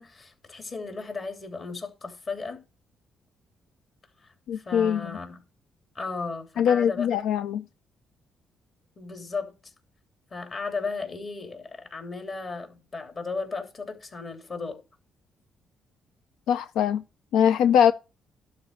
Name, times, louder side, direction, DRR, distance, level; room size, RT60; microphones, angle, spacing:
voice 1, 0.0-2.6 4.2-5.4 5.9-7.3 9.0-9.7 10.3-14.8, left 4 dB, 40° left, 3.1 m, -35 dB
voice 2, 4.5-5.1 6.6-7.6 16.5-17.0 17.3-17.9, left 8 dB, 85° left, 0.4 m, -22 dB
12.0 x 4.2 x 8.1 m
cardioid pair, 90°, 0 cm